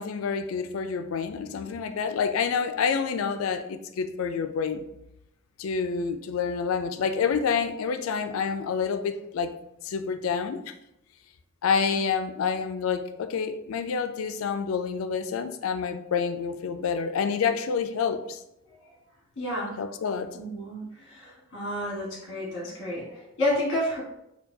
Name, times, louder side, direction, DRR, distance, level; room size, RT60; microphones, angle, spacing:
voice 1, 0.0-4.9 5.6-9.6 9.8-10.6 11.6-18.4 19.8-20.4, left 6 dB, 85° left, 0.4 m, -28 dB
voice 2, 19.4-19.8 20.3-24.0, left 1 dB, 60° left, 1.4 m, -30 dB
4.5 x 2.3 x 2.7 m
head